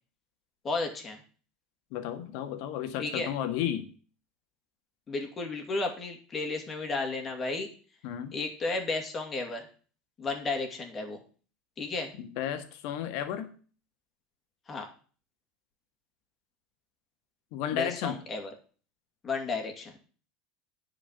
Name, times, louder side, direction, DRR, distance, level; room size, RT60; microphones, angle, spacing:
voice 1, 0.6-1.2 3.0-3.3 5.1-7.7 8.3-9.7 10.2-11.2 11.8-12.1 14.7-14.9 17.7-18.5 19.2-19.9, left 3 dB, 25° left, 4 dB, 2.5 m, -33 dB
voice 2, 1.9-3.9 8.0-8.3 12.2-13.5 17.5-18.2, left 10 dB, 65° left, 8 dB, 1.6 m, -33 dB
10.5 x 5.0 x 8.2 m, 0.40 s
supercardioid pair, 140°, 0 cm